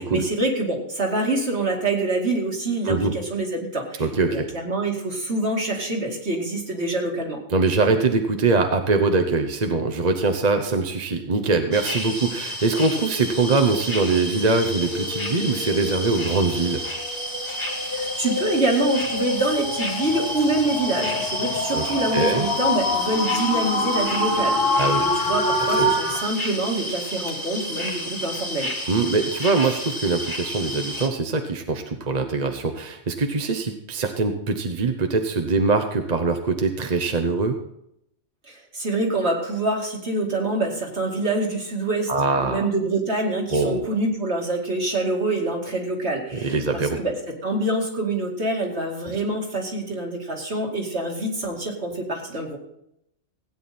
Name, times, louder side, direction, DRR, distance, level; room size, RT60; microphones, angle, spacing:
voice 1, 0.0-7.4 17.8-28.7 38.5-52.6, right 2 dB, 60° right, 0 dB, 2.7 m, -26 dB
voice 2, 4.0-4.5 7.5-16.8 21.7-21.8 22.1-22.5 24.8-25.0 25.6-25.9 28.9-37.6 42.1-42.7 43.5-43.9 46.3-47.0, right 3 dB, 35° right, 5 dB, 1.0 m, -23 dB
sound 1, 11.7-31.1, equal, 25° left, 1.9 m, -31 dB
sound 2, 13.0-26.2, left 2 dB, 50° left, 1.4 m, -27 dB
16.5 x 9.2 x 4.3 m, 0.78 s
omnidirectional pair, 1.2 m